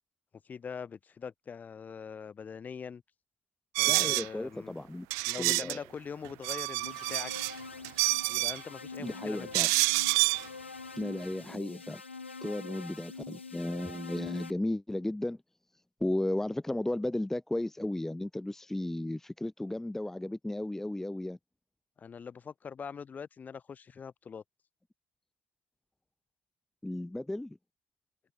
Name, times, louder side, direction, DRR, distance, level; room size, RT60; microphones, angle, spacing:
voice 1, 0.4-3.0 3.8-4.8 5.3-7.3 8.2-9.5 22.0-24.4, left 6 dB, 25° left, 1.3 m, -43 dB
sound 1, 3.7-4.3 5.1-5.8 6.2-7.5 7.8-8.6 9.5-10.4, right 30 dB, 55° right, 0.7 m, -28 dB
voice 2, 3.9-5.1 5.4-5.8 9.0-9.7 11.0-12.0 12.4-15.4 16.0-21.4 26.8-27.6, left 1 dB, 5° left, 0.9 m, -34 dB
sound 2, 6.8-14.5, left 4 dB, 85° left, 1.1 m, -45 dB
figure-of-eight pair, 70°, 6 cm